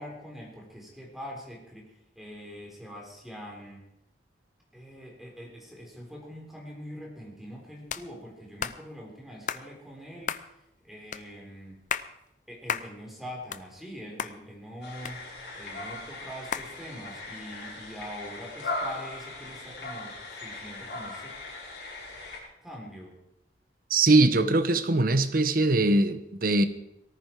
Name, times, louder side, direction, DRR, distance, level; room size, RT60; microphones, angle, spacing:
voice 1, 0.0-3.9 4.7-10.4 10.8-11.8 12.5-15.3 15.5-21.4 22.6-23.2, equal, ahead, 3.9 m, -43 dB
sound 1, 7.9-8.1 8.6-8.8 9.5-9.7 10.3-10.5 11.1-11.2 11.7-12.1 12.7-12.9 13.3-13.9 14.2-14.3 15.1-15.6 16.5-16.7, left 7 dB, 45° left, 0.6 m, -33 dB
sound 2, 14.8-22.4, left 2 dB, 70° left, 5.5 m, -39 dB
voice 2, 23.9-26.7, right 2 dB, 50° right, 0.9 m, -22 dB
18.5 x 14.0 x 4.6 m
head